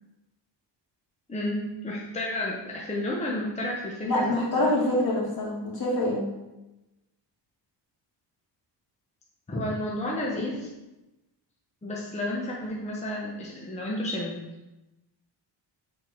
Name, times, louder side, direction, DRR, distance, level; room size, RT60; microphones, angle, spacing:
voice 1, 1.3-4.3 4.6-4.8 9.5-10.7 11.8-14.4, left 1 dB, 15° left, -3 dB, 0.9 m, -31 dB
voice 2, 4.0-6.2, left 1 dB, 55° left, -5 dB, 2.6 m, -25 dB
6.8 x 4.4 x 4.5 m, 1.0 s
wide cardioid pair, 140°, 43 cm